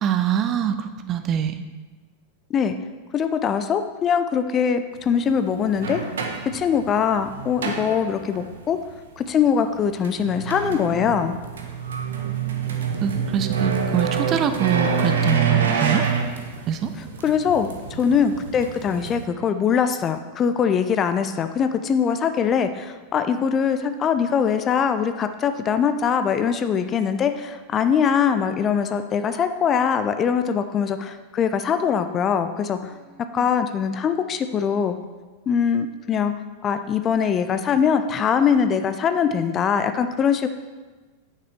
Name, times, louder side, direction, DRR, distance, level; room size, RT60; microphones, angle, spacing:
voice 1, 0.0-1.6 12.1-12.7 13.0-16.0 16.7-16.9 33.3-33.5, right 9 dB, 30° right, 9 dB, 0.5 m, -24 dB
voice 2, 3.1-6.0 6.5-8.8 9.2-11.4 17.0-32.9 33.3-34.9 35.5-36.3 36.6-40.5, left 7 dB, 25° left, 9 dB, 0.5 m, -22 dB
sound 1, 5.0-5.1 5.7-8.5 9.9-19.2, right 6 dB, 65° right, 0.9 m, -27 dB
9.2 x 6.6 x 3.5 m, 1.3 s
figure-of-eight pair, 90°, 0 cm